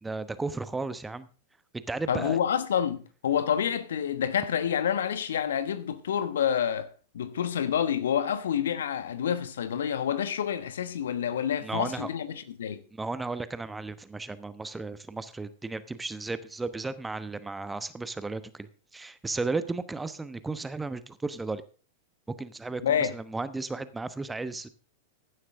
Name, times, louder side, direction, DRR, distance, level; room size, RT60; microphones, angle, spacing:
voice 1, 0.0-1.3 1.7-2.4 11.6-12.1 12.9-18.7 18.9-21.6 22.4-24.7, right 3 dB, 10° right, 1.0 m, -34 dB
voice 2, 2.1-6.9 7.1-12.8 22.8-23.1, left 8 dB, 65° left, 1.1 m, -28 dB
15.5 x 11.0 x 3.6 m
figure-of-eight pair, 90°, 0 cm